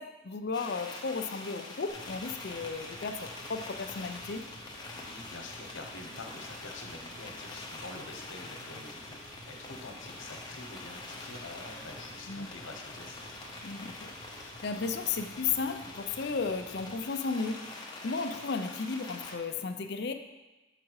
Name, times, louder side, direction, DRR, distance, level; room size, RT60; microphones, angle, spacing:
voice 1, 0.0-4.5 12.3-12.6 13.6-17.6 18.0-20.1, left 4 dB, 55° left, 7 dB, 0.5 m, -34 dB
sound 1, 0.5-19.4, left 2 dB, 20° left, 0.8 m, -45 dB
sound 2, 1.9-17.0, right 1 dB, 75° right, 1.1 m, -53 dB
voice 2, 4.9-13.2, left 2 dB, 75° left, 2 dB, 1.1 m, -46 dB
7.2 x 5.0 x 4.7 m, 1.1 s
head